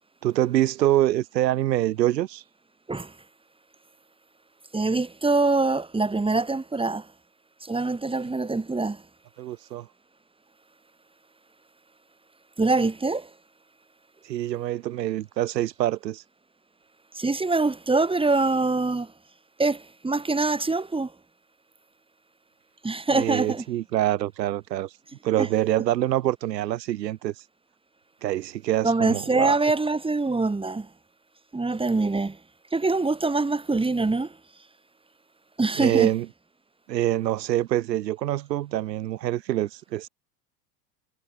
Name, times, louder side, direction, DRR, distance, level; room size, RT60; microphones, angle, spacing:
voice 1, 0.2-2.4 9.4-9.9 14.2-16.2 23.1-24.9 25.2-27.3 28.2-29.6 35.8-36.3 36.9-40.1, right 14 dB, 90° right, 1.0 m, -25 dB
voice 2, 4.7-7.1 7.6-9.0 12.6-13.3 17.1-19.1 19.6-21.1 22.8-23.6 25.4-25.5 28.8-30.9 31.5-32.4 32.7-34.4 35.6-36.1, right 3 dB, 10° right, 4.0 m, -24 dB
hypercardioid pair, 100°, 49 cm